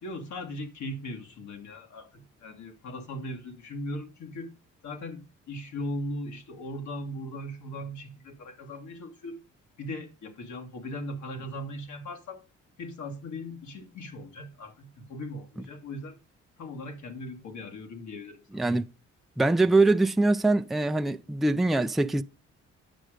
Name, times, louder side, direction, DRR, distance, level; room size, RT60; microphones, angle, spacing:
voice 1, 0.0-4.5 4.8-9.4 9.8-12.5 12.8-16.2 16.6-18.6, left 1 dB, 70° left, 2.0 m, -38 dB
voice 2, 18.5-18.8 19.4-22.2, right 2 dB, ahead, 0.4 m, -23 dB
9.0 x 6.2 x 5.0 m
cardioid pair, 90°, 30 cm